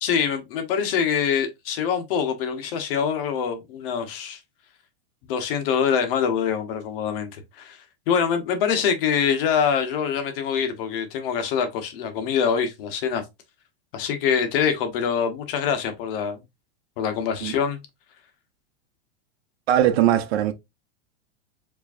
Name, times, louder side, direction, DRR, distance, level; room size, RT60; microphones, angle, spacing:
voice 1, 0.0-4.4 5.2-7.8 8.1-13.2 13.9-16.4 17.0-17.8, left 7 dB, 60° left, 1.2 m, -24 dB
voice 2, 19.7-20.5, right 11 dB, 75° right, 0.9 m, -20 dB
5.0 x 3.1 x 2.6 m
supercardioid pair, 155°, 32 cm